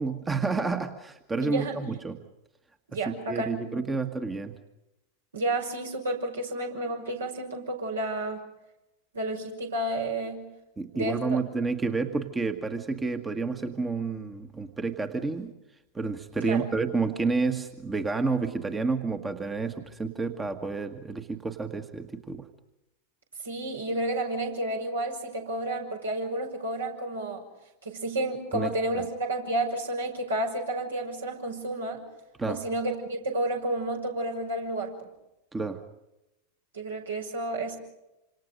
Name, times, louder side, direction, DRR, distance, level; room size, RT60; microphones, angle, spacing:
voice 1, 0.0-2.2 3.1-4.5 10.8-15.5 15.9-22.5 28.5-28.7 32.4-32.6 35.5-35.8, right 4 dB, 15° right, 7 dB, 1.6 m, -30 dB
voice 2, 1.4-1.7 2.9-3.6 5.3-8.4 9.1-10.5 10.9-11.4 16.4-16.7 23.4-27.4 27.8-32.0 32.5-35.1 36.7-37.8, right 1 dB, 70° right, 1 dB, 6.1 m, -31 dB
28.0 x 26.5 x 5.2 m, 0.92 s
figure-of-eight pair, 90°, 0 cm